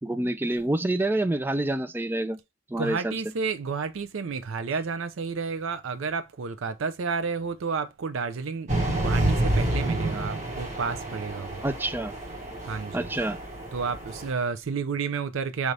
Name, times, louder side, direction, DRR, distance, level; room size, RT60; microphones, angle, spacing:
voice 1, 0.0-2.4 2.7-3.1 11.6-12.1 12.9-13.4, right 1 dB, 10° right, 0.3 m, -27 dB
voice 2, 2.8-11.6 12.6-13.1 13.7-15.7, right 5 dB, 80° right, 0.5 m, -31 dB
sound 1, 8.7-14.3, right 1 dB, 35° right, 1.2 m, -29 dB
4.8 x 2.7 x 3.2 m
head